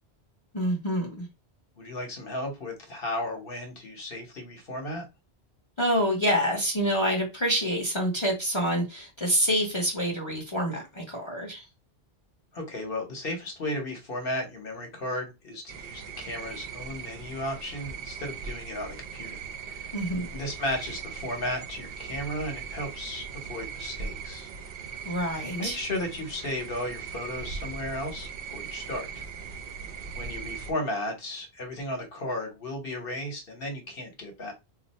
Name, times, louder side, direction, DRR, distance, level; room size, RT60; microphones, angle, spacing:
voice 1, 0.5-1.3 5.8-11.6 19.9-20.3 25.0-25.7, equal, 30° left, 0.8 m, -27 dB
voice 2, 1.8-5.1 12.5-19.4 19.7-19.9 20.3-24.5 25.5-29.2 30.1-34.5, left 1 dB, 60° left, 1.2 m, -34 dB
sound 1, 15.7-30.7, right 6 dB, 65° right, 0.8 m, -39 dB
2.5 x 2.4 x 4.1 m
omnidirectional pair, 1.1 m